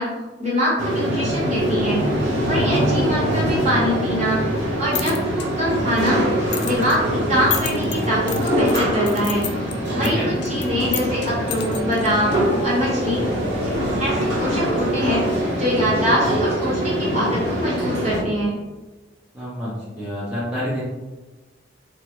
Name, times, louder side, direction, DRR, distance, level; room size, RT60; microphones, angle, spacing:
voice 1, 0.0-2.0 2.5-6.2 6.6-9.4 9.9-12.3 12.6-13.4 13.7-18.6, equal, 35° right, -6 dB, 1.0 m, -24 dB
sound 1, 0.8-18.2, equal, 70° right, 1.3 m, -23 dB
voice 2, 2.6-2.9 9.9-10.3 19.3-20.8, equal, 5° right, -10 dB, 0.6 m, -28 dB
sound 2, 4.6-12.7, left 9 dB, 60° left, 0.3 m, -34 dB
sound 3, 5.7-17.6, equal, 25° left, 0.7 m, -34 dB
3.3 x 2.2 x 2.9 m, 1.1 s
head